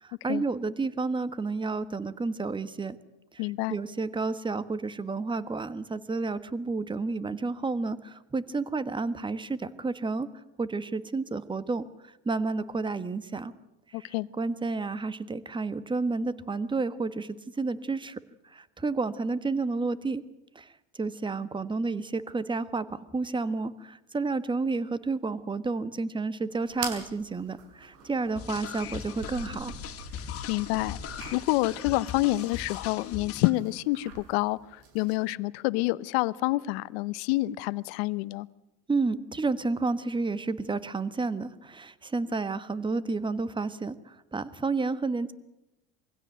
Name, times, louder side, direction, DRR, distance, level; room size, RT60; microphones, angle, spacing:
voice 1, 0.0-2.9 3.3-3.4 3.7-10.3 10.6-11.8 12.2-13.5 13.9-18.2 18.5-20.2 20.5-20.7 21.0-29.7 38.9-45.3, right 3 dB, 15° right, 14 dB, 1.4 m, -31 dB
voice 2, 3.4-3.8 13.9-14.3 30.5-31.0 31.3-38.5, left 19 dB, 75° left, 18 dB, 0.9 m, -28 dB
sound 1, 26.7-35.2, right 4 dB, 65° right, 6.4 m, -45 dB
sound 2, 28.4-33.5, left 9 dB, 45° left, 2.4 m, -39 dB
24.0 x 16.5 x 9.2 m, 0.93 s
supercardioid pair, 100°, 32 cm